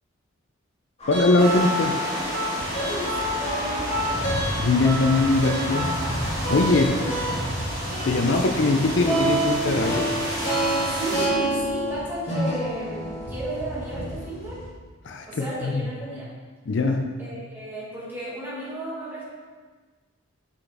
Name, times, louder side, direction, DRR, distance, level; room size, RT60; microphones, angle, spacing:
sound 1, 1.0-14.7, right 1 dB, 30° left, 1.8 m, -28 dB
voice 1, 1.1-2.0 4.6-6.9 8.0-10.1 15.0-15.8 16.7-17.1, left 3 dB, 60° left, 3 dB, 0.5 m, -22 dB
sound 2, 1.4-11.3, equal, 35° right, 2.1 m, -31 dB
voice 2, 2.8-4.3 6.7-7.5 10.8-14.6 15.3-16.3 17.2-19.3, right 1 dB, 10° right, -8 dB, 1.8 m, -34 dB
6.0 x 5.8 x 3.4 m, 1.4 s
head